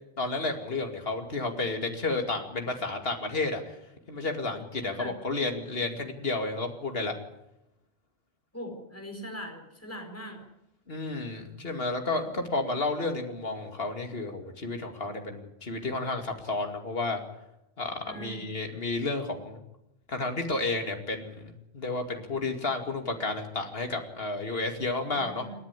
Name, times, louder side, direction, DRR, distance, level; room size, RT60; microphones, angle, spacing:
voice 1, 0.2-3.8 4.1-7.2 10.9-17.2 17.8-19.6 20.1-25.5, left 3 dB, 60° left, 4 dB, 2.7 m, -31 dB
voice 2, 8.5-10.4 18.1-18.5 25.1-25.5, equal, 15° left, 3 dB, 4.7 m, -41 dB
28.0 x 10.5 x 9.8 m, 0.87 s
omnidirectional pair, 1.1 m